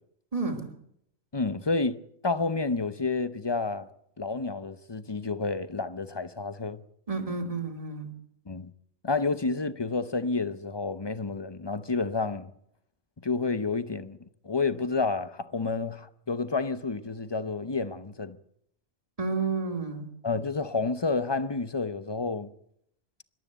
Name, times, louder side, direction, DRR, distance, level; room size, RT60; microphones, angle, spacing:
voice 1, 0.3-0.7 7.1-8.1 19.2-20.1, right 4 dB, 30° right, 2.7 m, -31 dB
voice 2, 1.3-3.9 4.2-6.8 8.5-8.7 9.0-12.5 13.2-14.2 14.4-18.4 20.2-22.5, left 3 dB, 25° left, 0.8 m, -30 dB
26.0 x 12.5 x 8.1 m
omnidirectional pair, 1.1 m